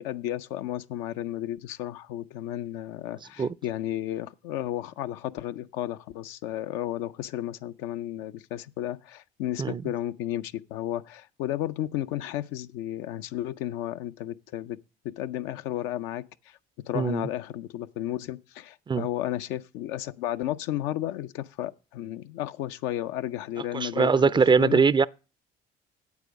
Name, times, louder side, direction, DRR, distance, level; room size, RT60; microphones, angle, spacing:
voice 1, 0.0-14.8 15.0-16.6 16.9-24.8, left 13 dB, 80° left, 0.5 m, -33 dB
voice 2, 16.9-17.3 18.9-19.1 23.7-25.1, right 5 dB, 25° right, 0.4 m, -21 dB
8.4 x 8.3 x 5.2 m
supercardioid pair, 65°, 19 cm